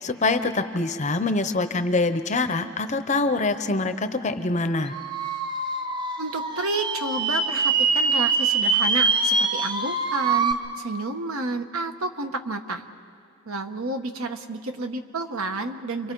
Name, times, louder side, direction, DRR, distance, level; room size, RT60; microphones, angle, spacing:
voice 1, 0.0-5.0, left 3 dB, 30° left, 9 dB, 0.7 m, -24 dB
sound 1, 4.9-10.5, right 4 dB, 20° right, 0.8 m, -24 dB
voice 2, 6.2-12.8 13.5-16.1, right 3 dB, 75° right, 7 dB, 1.2 m, -30 dB
29.5 x 24.0 x 4.6 m, 2.3 s
head